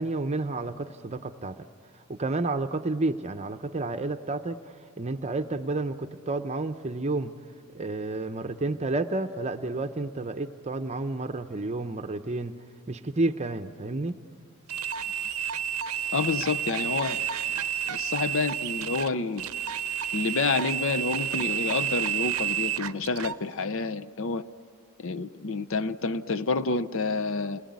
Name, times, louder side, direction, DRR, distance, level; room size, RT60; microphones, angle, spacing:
voice 1, 0.0-1.7 2.1-4.6 5.0-7.3 7.7-12.5 12.9-14.2, right 2 dB, 30° right, 8 dB, 0.7 m, -30 dB
sound 1, 14.7-23.4, right 9 dB, 85° right, 0.7 m, -30 dB
voice 2, 16.1-17.2 17.9-19.5 20.1-24.5 25.0-27.6, left 4 dB, 65° left, 11 dB, 0.7 m, -29 dB
29.5 x 20.5 x 9.5 m, 2.3 s
head